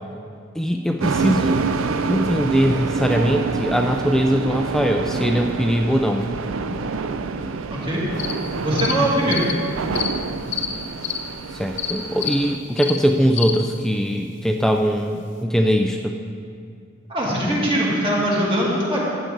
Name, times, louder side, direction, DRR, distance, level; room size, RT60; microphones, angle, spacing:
voice 1, 0.6-1.6 2.1-6.3 11.5-16.1, equal, ahead, 3 dB, 0.3 m, -21 dB
sound 1, 1.0-12.6, right 4 dB, 80° right, 0.5 m, -27 dB
voice 2, 7.7-8.0 8.6-9.4 17.1-19.0, right 1 dB, 25° right, -5 dB, 2.3 m, -21 dB
sound 2, 8.2-8.3 8.8-8.9 9.3-9.5 9.9-10.1 10.5-10.7 11.0-11.2 11.8-11.9 12.2-12.4 12.8-13.0 13.3-13.5, left 9 dB, 60° left, 0.9 m, -26 dB
13.0 x 9.0 x 4.0 m, 2.3 s
head